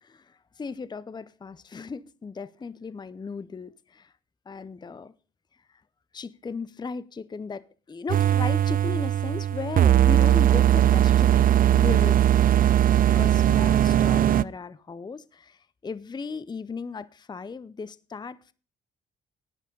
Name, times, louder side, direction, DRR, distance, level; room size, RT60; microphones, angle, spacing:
voice 1, 0.0-4.1 4.5-5.1 6.1-12.4 13.1-18.5, left 5 dB, 20° left, 0.6 m, -36 dB
sound 1, 8.1-14.4, right 11 dB, 45° right, 0.4 m, -19 dB
11.5 x 9.2 x 5.3 m
cardioid pair, 90°, 20 cm